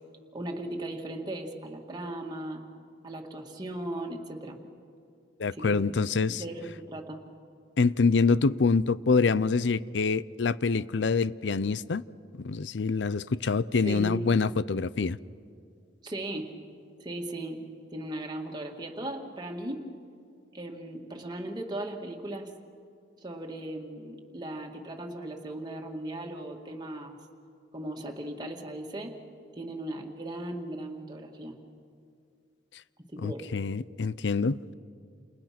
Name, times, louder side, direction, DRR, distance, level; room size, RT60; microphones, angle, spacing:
voice 1, 0.3-2.6 3.0-4.6 5.6-5.9 6.3-7.2 13.8-14.2 16.0-16.5 17.0-17.7 17.9-19.9 20.5-22.5 23.2-27.2 27.7-29.1 29.6-31.6 33.1-33.4, right 1 dB, 25° right, 2.0 m, -37 dB
voice 2, 5.4-6.4 7.8-12.0 12.4-15.2 33.2-34.7, left 4 dB, 85° left, 0.6 m, -26 dB
29.0 x 28.5 x 6.0 m
head